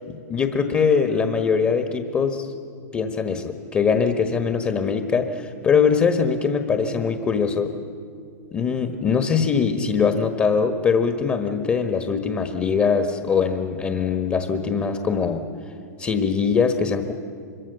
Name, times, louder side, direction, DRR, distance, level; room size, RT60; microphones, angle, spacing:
voice 1, 0.1-2.5 2.9-7.8 8.5-15.5 16.0-17.1, left 6 dB, 25° left, 7 dB, 1.5 m, -22 dB
25.0 x 22.5 x 6.8 m, 2.4 s
hypercardioid pair, 105°, 9 cm